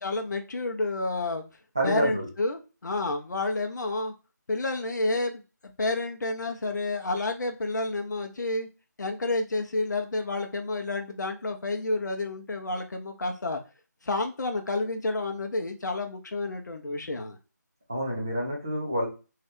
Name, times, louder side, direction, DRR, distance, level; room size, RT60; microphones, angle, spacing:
voice 1, 0.0-1.4 1.8-4.1 4.5-5.4 5.8-8.7 9.0-13.6 14.0-17.4, left 2 dB, 70° left, 4 dB, 0.6 m, -30 dB
voice 2, 1.8-2.3 17.9-19.1, equal, 10° right, -2 dB, 0.3 m, -28 dB
2.7 x 2.3 x 3.4 m, 0.32 s
figure-of-eight pair, 170°, 10 cm